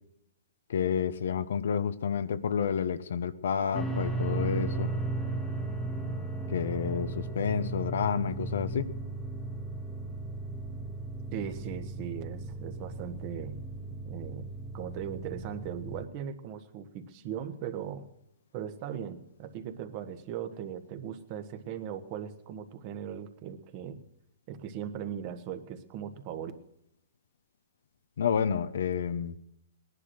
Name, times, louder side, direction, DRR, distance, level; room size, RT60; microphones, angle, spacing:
voice 1, 0.7-4.9 6.5-8.9 28.2-29.4, left 7 dB, 70° left, 12 dB, 1.0 m, -30 dB
sound 1, 3.7-16.1, right 2 dB, 5° left, 1.4 m, -36 dB
voice 2, 11.3-13.6 13.9-14.5 14.7-18.0 18.5-24.0 24.5-26.5, right 9 dB, 40° right, 8 dB, 1.5 m, -39 dB
18.5 x 11.0 x 6.6 m, 0.76 s
hypercardioid pair, 140°, 0 cm